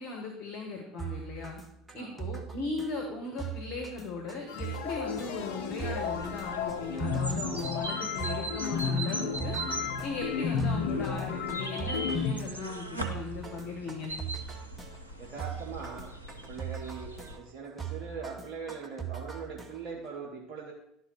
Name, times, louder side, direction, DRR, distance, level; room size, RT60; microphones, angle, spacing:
voice 1, 0.0-1.6 1.9-9.6 10.0-14.1, left 3 dB, 45° left, 1 dB, 1.4 m, -38 dB
sound 1, 1.0-20.1, right 8 dB, 15° right, 1.1 m, -41 dB
voice 2, 1.9-2.3 9.7-10.0 15.2-20.7, right 5 dB, 50° right, 0 dB, 1.0 m, -41 dB
sound 2, 4.5-12.4, left 6 dB, 60° left, 0.6 m, -33 dB
sound 3, 5.8-17.4, right 2 dB, 90° right, 0.7 m, -41 dB
11.0 x 4.1 x 5.6 m, 0.78 s
figure-of-eight pair, 65°, 0 cm